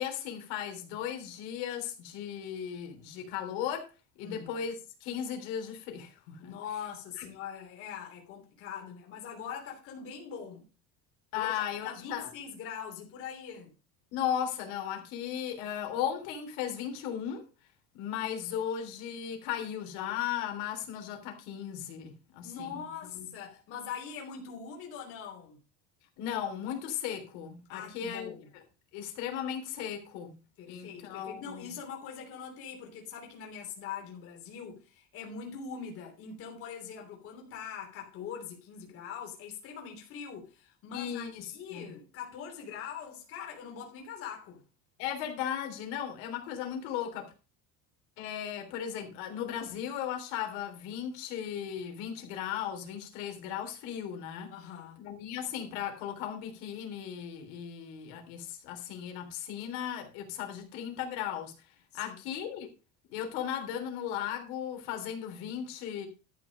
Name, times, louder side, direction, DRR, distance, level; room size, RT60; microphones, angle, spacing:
voice 1, 0.0-3.9 4.2-4.7 5.0-6.5 7.2-7.3 11.3-12.3 14.1-17.4 17.9-23.3 26.2-28.6 28.9-30.3 30.7-31.7 40.9-41.9 45.0-47.3 48.2-54.5 55.0-61.5 61.9-62.7 63.1-66.1, left 9 dB, 85° left, 3.5 m, -36 dB
voice 2, 4.2-4.6 6.4-10.7 11.3-11.5 11.8-13.7 22.4-25.6 27.7-28.5 30.6-44.6 54.5-55.0 62.0-62.1, left 7 dB, 40° left, 3.2 m, -42 dB
12.5 x 6.2 x 5.3 m
cardioid pair, 175°, 33 cm